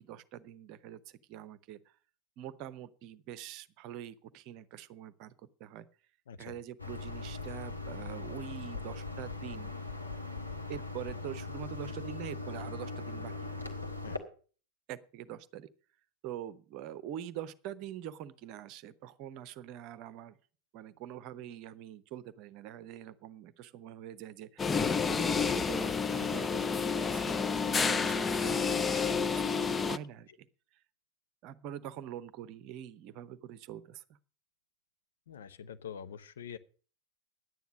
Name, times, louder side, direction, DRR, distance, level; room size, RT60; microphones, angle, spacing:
voice 1, 0.0-1.9 2.4-5.3 5.6-5.9 6.4-9.7 10.7-13.3 13.7-13.8 14.9-15.7 16.2-20.4 20.7-24.7 25.1-30.5 30.7-30.8 31.4-34.0, right 11 dB, 40° right, 16 dB, 0.8 m, -45 dB
sound 1, 6.8-14.2, left 3 dB, 85° left, 1.7 m, -40 dB
sound 2, 24.6-30.0, left 5 dB, 15° left, 0.5 m, -30 dB
voice 2, 35.3-36.6, left 8 dB, 60° left, 11 dB, 0.8 m, -45 dB
11.0 x 9.3 x 6.2 m, 0.40 s
figure-of-eight pair, 90°, 0 cm